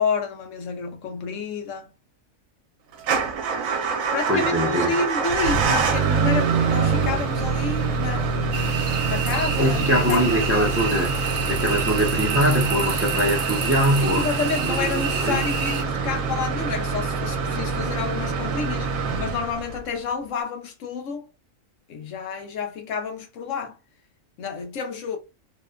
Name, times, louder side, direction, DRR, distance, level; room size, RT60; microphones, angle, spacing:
voice 1, 0.0-1.9 4.1-8.7 9.1-10.7 14.0-21.3 21.9-23.8 24.4-25.2, left 5 dB, 70° left, 1.0 m, -29 dB
Motor vehicle (road) / Engine starting / Idling, 3.0-20.0, right 5 dB, 85° right, 1.0 m, -25 dB
voice 2, 4.3-4.9 9.6-14.3 14.6-15.4, equal, 20° right, 0.3 m, -23 dB
sound 1, 8.5-15.8, right 6 dB, 65° right, 0.9 m, -30 dB
2.8 x 2.1 x 2.3 m
omnidirectional pair, 1.4 m